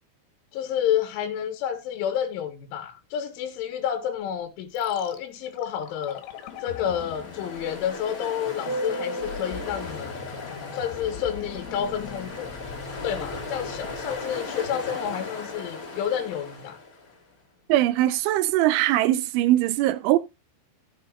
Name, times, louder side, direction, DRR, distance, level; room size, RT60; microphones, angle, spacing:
voice 1, 0.5-6.2 6.6-10.2 10.7-12.5 13.0-16.8, left 9 dB, 90° left, 3.7 m, -29 dB
sound 1, 4.7-16.7 17.0-17.1, left 7 dB, 75° left, 3.5 m, -43 dB
Ocean, 6.1-17.2, left 2 dB, 25° left, 2.1 m, -36 dB
voice 2, 17.7-20.2, right 15 dB, 90° right, 3.2 m, -21 dB
14.5 x 8.9 x 2.4 m
omnidirectional pair, 5.4 m